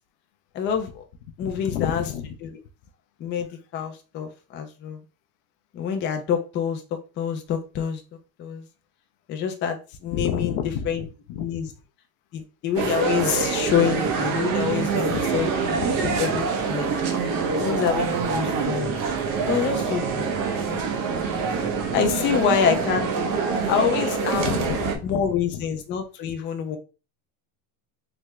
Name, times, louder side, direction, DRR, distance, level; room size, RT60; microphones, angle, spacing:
voice 1, 0.5-1.0 1.4-2.0 2.4-2.6 3.2-5.0 5.7-8.0 8.4-8.7 9.3-10.6 10.8-11.0 11.4-11.7 12.3-16.9 17.5-19.0 19.5-20.3 20.7-20.9 21.9-23.1 23.7-24.5 25.0-26.8, left 7 dB, 30° left, 0.4 m, -26 dB
voice 2, 1.5-2.4 10.1-11.5 15.0-16.4 22.1-22.7 23.2-23.3 24.4-25.2 25.5-25.6, left 8 dB, 75° left, 0.6 m, -31 dB
sound 1, 12.7-25.0, right 5 dB, 55° right, 0.7 m, -25 dB
3.5 x 2.0 x 3.1 m
cardioid pair, 140°, 43 cm